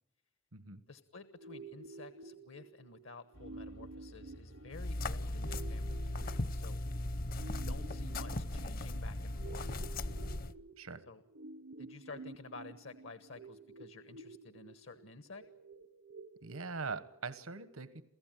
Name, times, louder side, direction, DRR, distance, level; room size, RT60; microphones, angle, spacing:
voice 1, 0.9-6.8 7.3-9.7 11.1-11.2 11.8-15.4, left 3 dB, 65° left, 11 dB, 1.2 m, -52 dB
sound 1, 1.4-17.3, right 3 dB, 70° right, 0.9 m, -52 dB
sound 2, 3.3-10.3, equal, 90° left, 4.8 m, -56 dB
sound 3, 4.7-10.5, left 1 dB, 45° left, 0.8 m, -37 dB
voice 2, 16.4-18.0, right 4 dB, 85° right, 13 dB, 1.3 m, -42 dB
28.5 x 16.0 x 9.2 m, 0.84 s
head